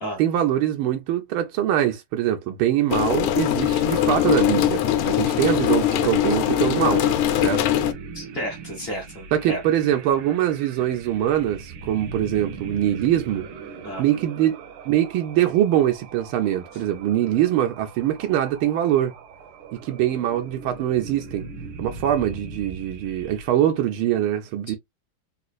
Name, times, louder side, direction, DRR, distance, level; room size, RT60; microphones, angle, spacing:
voice 1, 0.2-7.0 7.4-7.6 9.3-13.5 14.0-14.6 14.8-19.1 19.7-21.4 21.8-24.8, right 11 dB, 85° right, 1.5 m, -23 dB
sound 1, 2.9-7.9, left 11 dB, 85° left, 1.5 m, -21 dB
sound 2, 3.9-23.5, right 5 dB, 70° right, 1.3 m, -40 dB
voice 2, 8.1-9.6 13.8-14.0 24.7-24.8, equal, 35° left, 1.1 m, -32 dB
4.1 x 2.4 x 2.3 m
omnidirectional pair, 2.3 m